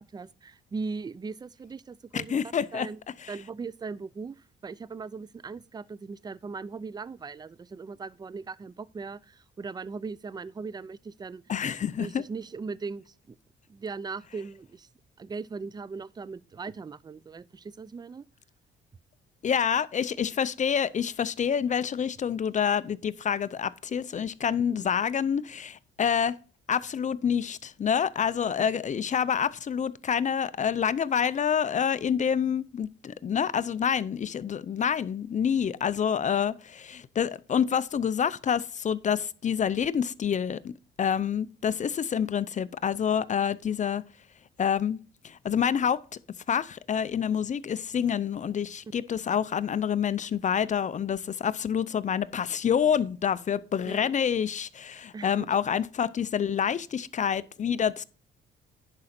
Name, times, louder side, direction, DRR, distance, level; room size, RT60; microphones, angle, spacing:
voice 1, 0.1-2.4 2.7-3.0 3.3-11.4 12.0-13.4 13.7-14.9 15.2-18.2 24.7-24.9 53.9-54.1 55.1-55.6, right 4 dB, 20° right, 0.4 m, -39 dB
voice 2, 2.1-2.9 3.2-3.3 11.5-12.2 19.4-26.4 26.7-40.7 41.0-44.0 44.6-45.0 45.2-46.0 46.5-58.0, left 8 dB, 40° left, 0.5 m, -27 dB
10.5 x 4.9 x 4.2 m
cardioid pair, 90°, 20 cm